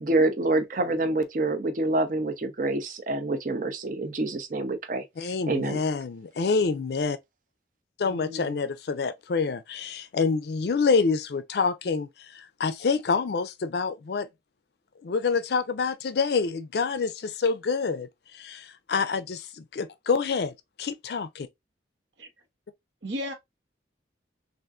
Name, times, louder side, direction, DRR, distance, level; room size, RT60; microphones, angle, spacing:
voice 1, 0.0-5.0 5.5-5.8, right 2 dB, 45° right, 0.6 m, -26 dB
voice 2, 5.2-7.2 8.0-14.3 15.0-18.1 18.3-20.5 20.8-21.5, left 4 dB, 60° left, 0.4 m, -27 dB
voice 3, 8.0-8.6 22.2-22.3 23.0-23.3, left 1 dB, 80° right, 1.0 m, -35 dB
3.6 x 2.5 x 2.4 m
head